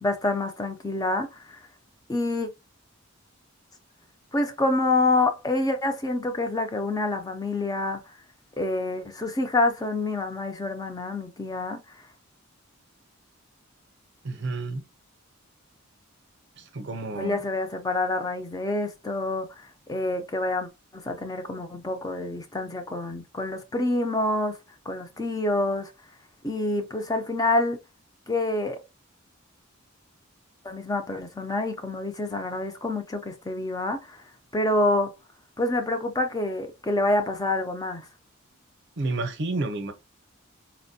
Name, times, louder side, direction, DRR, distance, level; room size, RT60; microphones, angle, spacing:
voice 1, 0.0-1.6 2.1-2.5 4.3-8.0 8.6-11.8 17.2-24.6 24.9-25.9 26.4-27.8 28.3-28.8 30.6-34.2 34.5-35.1 35.6-38.1, left 2 dB, 15° left, 0.5 m, -27 dB
voice 2, 14.2-14.8 16.6-17.4 39.0-39.9, right 2 dB, 55° right, 0.6 m, -30 dB
4.2 x 2.2 x 2.6 m
head